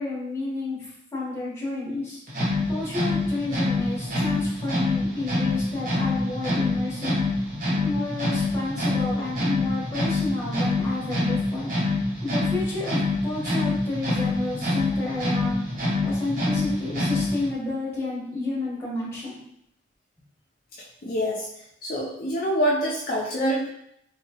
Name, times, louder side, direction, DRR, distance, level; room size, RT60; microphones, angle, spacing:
voice 1, 0.0-2.2 2.7-7.2 7.8-11.7 12.2-15.6 16.0-19.4, left 2 dB, 15° left, -7 dB, 1.2 m, -31 dB
sound 1, 2.3-17.5, left 2 dB, 45° right, 0.9 m, -26 dB
voice 2, 21.0-21.5 21.8-23.7, equal, 45° left, -4 dB, 0.4 m, -25 dB
3.7 x 2.8 x 2.9 m, 0.76 s
head